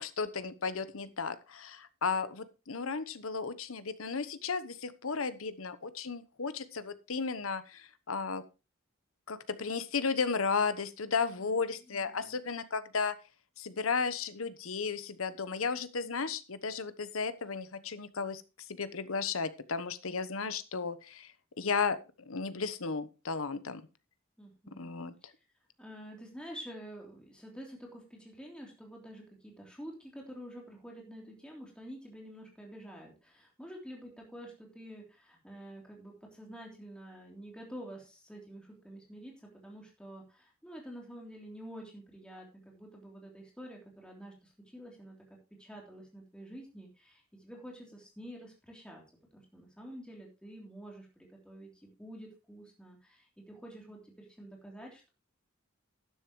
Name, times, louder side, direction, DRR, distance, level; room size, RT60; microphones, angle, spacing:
voice 1, 0.0-8.4 9.3-13.2 13.6-18.4 18.7-21.3 21.6-22.0 22.3-23.8 24.8-25.1, left 5 dB, 80° left, 13 dB, 1.0 m, -34 dB
voice 2, 11.9-12.4 20.0-20.4 24.4-24.9 25.8-45.1 45.6-49.0 49.3-55.1, equal, 5° left, -1 dB, 3.3 m, -48 dB
12.0 x 10.5 x 3.1 m, 0.29 s
head